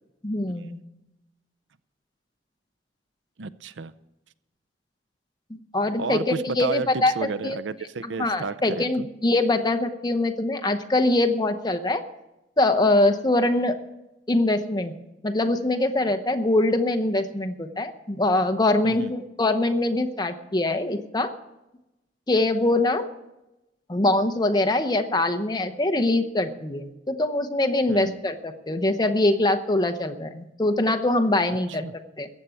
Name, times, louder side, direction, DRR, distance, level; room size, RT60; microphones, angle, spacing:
voice 1, 0.2-0.8 5.7-7.1 7.4-7.6 8.2-12.0 12.6-13.8 14.3-14.9 15.2-21.3 22.3-23.1 23.9-32.3, left 2 dB, 25° left, 7 dB, 0.9 m, -23 dB
voice 2, 3.4-3.9 6.0-9.1 18.8-19.1 27.9-28.2 31.7-31.9, right 4 dB, 90° right, 16 dB, 0.6 m, -32 dB
15.0 x 9.0 x 7.0 m, 0.95 s
head